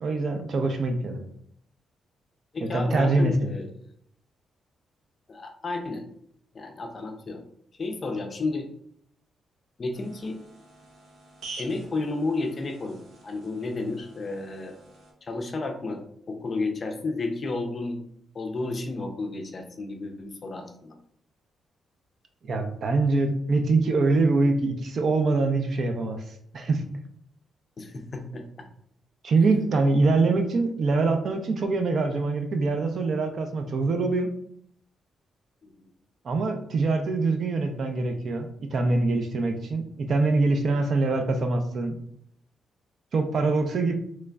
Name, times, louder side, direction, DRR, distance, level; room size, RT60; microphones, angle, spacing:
voice 1, 0.0-1.2 2.7-3.5 22.4-26.2 26.5-26.8 29.2-34.3 36.2-42.0 43.1-43.9, right 3 dB, 50° right, 6 dB, 0.5 m, -24 dB
voice 2, 2.5-3.7 5.3-6.1 6.5-7.4 7.8-8.7 9.8-10.4 11.6-14.8 15.2-18.0 18.3-21.0 27.8-28.4, left 3 dB, 35° left, 5 dB, 0.5 m, -32 dB
sound 1, 9.9-15.1, right 3 dB, 75° right, 1.0 m, -47 dB
3.6 x 3.1 x 2.2 m, 0.68 s
cardioid pair, 135°, 0 cm